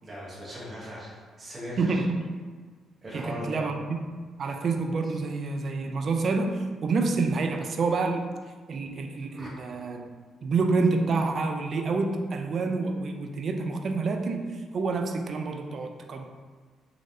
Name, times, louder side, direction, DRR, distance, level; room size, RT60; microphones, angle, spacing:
voice 1, 0.0-2.0 3.0-3.6 9.3-9.5, left 1 dB, 30° right, -6 dB, 1.1 m, -39 dB
voice 2, 1.8-2.2 3.1-4.0 4.4-8.3 8.7-10.1 10.4-14.5 14.7-16.3, right 3 dB, 50° right, 5 dB, 0.4 m, -28 dB
3.8 x 3.1 x 2.7 m, 1.5 s
cardioid pair, 90°, 0 cm